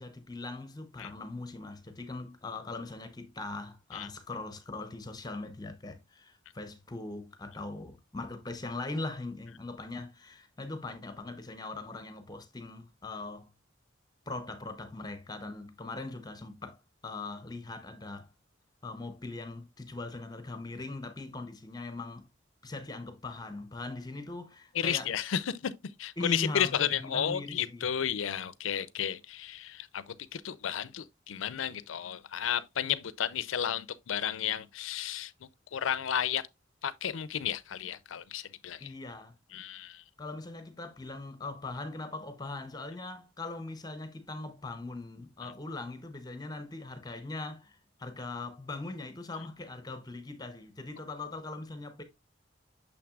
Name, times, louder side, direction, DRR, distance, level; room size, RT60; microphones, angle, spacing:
voice 1, 0.0-13.5 14.3-18.3 18.8-22.3 22.6-25.1 26.2-27.9 38.8-39.4 40.2-52.0, left 3 dB, 20° left, 0.7 m, -40 dB
voice 2, 24.7-25.7 26.0-35.3 35.7-36.5 36.8-38.9 39.5-40.0 45.4-45.5, left 9 dB, 90° left, 0.5 m, -33 dB
6.6 x 5.9 x 2.4 m
head